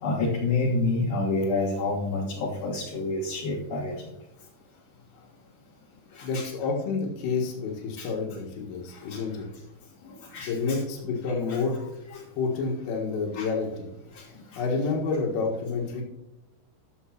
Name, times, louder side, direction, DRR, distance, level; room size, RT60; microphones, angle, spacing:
voice 1, 0.0-4.0 6.1-6.5 8.0-8.1 9.1-9.2 10.1-10.8 11.5-11.6 12.1-12.2 13.3-13.5 14.2-14.3 14.5-14.6, left 3 dB, 60° left, -5 dB, 2.8 m, -28 dB
voice 2, 6.2-9.4 10.4-11.8 12.4-13.9 14.6-16.0, left 4 dB, 90° left, -1 dB, 4.2 m, -29 dB
13.0 x 7.6 x 2.9 m, 0.89 s
omnidirectional pair, 5.6 m